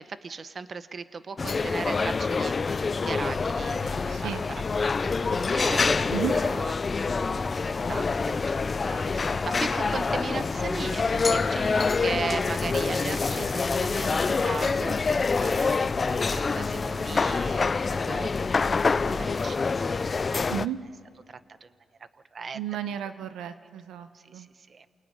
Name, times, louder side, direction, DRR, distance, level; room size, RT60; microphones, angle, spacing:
voice 1, 0.0-2.8 3.0-17.8 18.1-18.6 19.0-20.5 21.3-21.7 22.3-22.6 24.1-24.9, right 5 dB, 40° right, 12 dB, 1.1 m, -38 dB
sound 1, 1.4-20.7, left 4 dB, 35° left, 0.6 m, -26 dB
sound 2, 3.2-19.2, left 4 dB, 50° left, 1.8 m, -41 dB
voice 2, 4.1-4.4 6.1-6.4 20.5-20.8 22.5-24.5, right 10 dB, 85° right, 10 dB, 1.1 m, -33 dB
Trumpet, 8.5-13.5, equal, 15° right, 5.5 m, -48 dB
27.5 x 19.0 x 9.9 m, 2.7 s
cardioid pair, 95°, 0 cm